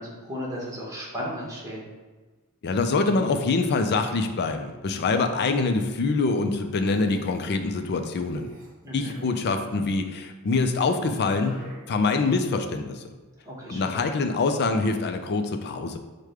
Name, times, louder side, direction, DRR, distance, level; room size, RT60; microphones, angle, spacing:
voice 1, 0.0-1.9 8.8-9.2 13.4-14.1, equal, 15° right, -5 dB, 1.1 m, -35 dB
voice 2, 2.6-8.5 8.9-13.0 13.7-16.0, left 3 dB, 50° left, 6 dB, 0.4 m, -25 dB
sound 1, 6.7-9.4 11.0-12.4, equal, 40° right, 0.9 m, -48 dB
4.8 x 2.2 x 4.8 m, 1.3 s
head